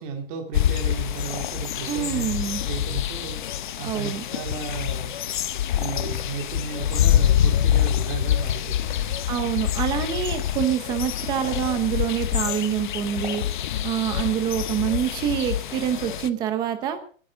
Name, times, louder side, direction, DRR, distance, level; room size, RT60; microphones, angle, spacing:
voice 1, 0.0-2.3 2.6-3.4 3.8-5.2 5.7-9.3, right 5 dB, 25° right, 3 dB, 2.2 m, -34 dB
sound 1, 0.5-16.3, left 11 dB, 40° left, 0.7 m, -26 dB
voice 2, 1.9-2.6 3.8-4.3 9.3-13.4 13.8-17.0, right 9 dB, 10° right, 9 dB, 0.8 m, -26 dB
21.0 x 9.8 x 5.1 m, 0.43 s
supercardioid pair, 180°, 40 cm